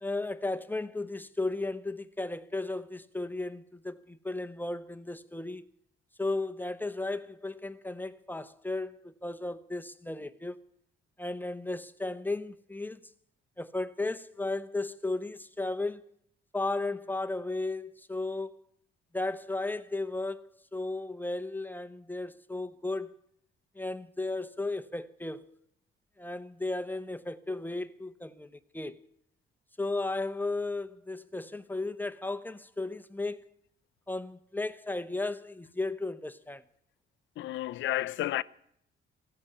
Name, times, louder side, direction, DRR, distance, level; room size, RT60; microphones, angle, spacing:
voice 1, 0.0-5.6 6.2-10.6 11.2-13.0 13.6-16.0 16.5-18.6 19.1-23.1 23.7-25.5 26.2-29.0 29.8-33.4 34.1-36.6, left 2 dB, 10° left, 0.8 m, -35 dB
voice 2, 37.4-38.4, left 15 dB, 75° left, 0.5 m, -31 dB
16.0 x 9.7 x 8.7 m
cardioid pair, 90°, 20 cm